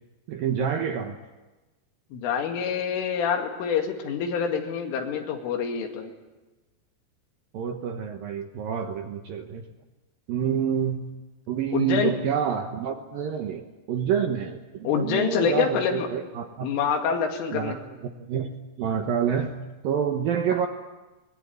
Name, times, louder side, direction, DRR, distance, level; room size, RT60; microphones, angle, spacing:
voice 1, 0.3-1.2 7.5-9.7 10.3-11.0 11.5-16.7 17.5-19.6 19.8-20.7, right 8 dB, 70° right, 5 dB, 2.3 m, -28 dB
voice 2, 2.1-6.1 11.7-12.1 14.8-16.1 16.6-17.8, left 6 dB, 90° left, 3 dB, 4.8 m, -26 dB
22.0 x 21.0 x 9.5 m, 1.1 s
omnidirectional pair, 5.5 m